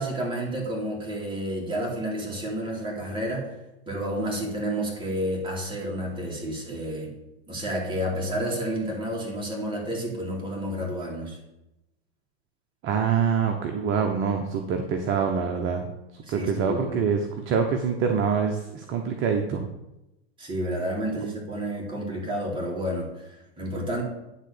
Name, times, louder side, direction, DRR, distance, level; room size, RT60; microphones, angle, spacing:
voice 1, 0.0-3.5 3.9-7.1 7.5-11.4 16.3-17.0 20.4-24.0, right 1 dB, 15° right, -3 dB, 2.7 m, -30 dB
voice 2, 12.8-15.8 16.3-19.6, right 6 dB, 35° right, 4 dB, 1.0 m, -25 dB
10.0 x 3.8 x 6.7 m, 0.94 s
hypercardioid pair, 125°, 35 cm